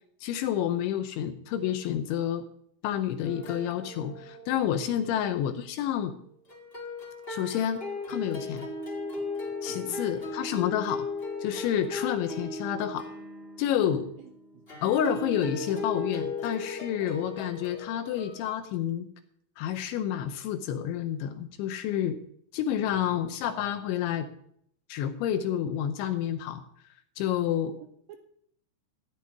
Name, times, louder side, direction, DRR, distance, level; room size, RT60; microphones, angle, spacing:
voice 1, 0.2-2.5 2.8-6.1 7.3-8.7 9.6-11.1 11.4-13.1 13.6-14.1 14.8-19.1 19.6-22.2 22.5-24.3 24.9-26.6 27.2-27.8, left 10 dB, 80° left, 8 dB, 2.9 m, -29 dB
sound 1, 3.2-5.1 6.5-18.5, left 3 dB, 50° left, 0.6 m, -37 dB
voice 2, 4.9-5.2 9.7-10.0 14.2-14.9 22.8-23.2 27.8-28.2, right 11 dB, 85° right, 6 dB, 2.5 m, -50 dB
14.5 x 5.8 x 9.5 m, 0.67 s
omnidirectional pair, 5.9 m